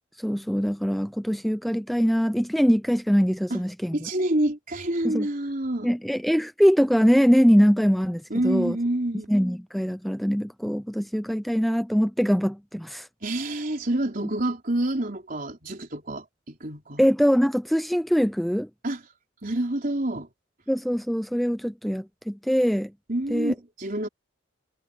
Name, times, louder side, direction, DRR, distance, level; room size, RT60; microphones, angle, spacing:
voice 1, 0.2-4.0 5.0-5.3 5.8-8.8 9.3-13.1 17.0-18.7 20.7-22.9 23.3-23.5, equal, ahead, 0.4 m, -22 dB
voice 2, 3.9-5.9 8.3-9.3 13.2-17.1 18.8-19.0 19.4-20.3 23.1-24.1, right 1 dB, 45° right, 4.1 m, -27 dB
head